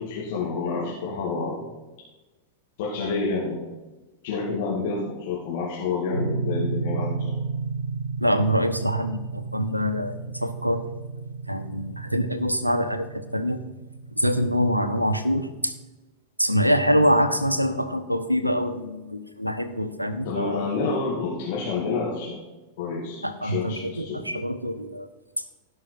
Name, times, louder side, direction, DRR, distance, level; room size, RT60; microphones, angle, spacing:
voice 1, 0.0-1.7 2.8-3.7 4.2-7.4 20.2-22.4 22.8-24.2, left 4 dB, 50° left, -5 dB, 2.4 m, -28 dB
sound 1, 6.1-15.9, right 4 dB, 90° left, 0.8 m, -33 dB
voice 2, 8.2-10.8 11.5-13.6 14.2-15.7 16.4-20.7 23.2-25.1, equal, 90° right, 11 dB, 0.8 m, -25 dB
17.0 x 5.6 x 4.5 m, 1.1 s
figure-of-eight pair, 90°, 0 cm